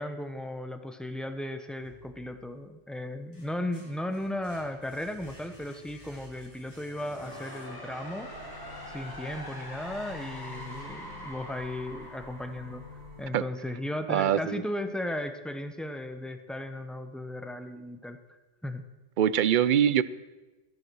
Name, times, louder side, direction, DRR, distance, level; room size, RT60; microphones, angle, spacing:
voice 1, 0.0-8.3 8.9-12.8 13.2-18.8, left 1 dB, ahead, 7 dB, 0.8 m, -36 dB
sound 1, 1.8-2.6 3.1-8.1, equal, 60° left, 3.7 m, -54 dB
sound 2, 6.9-13.8, left 1 dB, 20° left, 1.7 m, -44 dB
sound 3, 8.2-13.3, left 2 dB, 40° right, 2.0 m, -48 dB
voice 2, 14.1-14.6 19.2-20.0, right 9 dB, 55° right, 16 dB, 0.6 m, -23 dB
14.5 x 11.0 x 6.3 m, 1.2 s
omnidirectional pair, 1.2 m